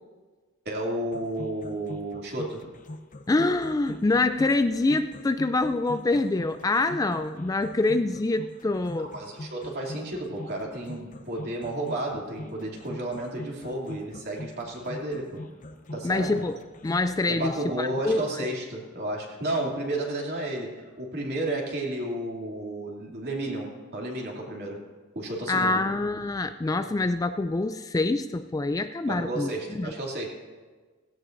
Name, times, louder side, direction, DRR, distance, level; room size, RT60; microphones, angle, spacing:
voice 1, 0.6-2.6 9.1-15.5 15.9-16.4 17.3-24.8 25.1-26.0 29.0-30.3, right 1 dB, 50° right, -2 dB, 2.8 m, -32 dB
sound 1, 1.1-17.1, left 1 dB, 40° left, 0.7 m, -42 dB
voice 2, 3.3-9.1 16.0-16.6 16.8-18.4 25.5-29.9, left 2 dB, 15° left, 9 dB, 0.3 m, -25 dB
17.5 x 17.0 x 2.6 m, 1.4 s
head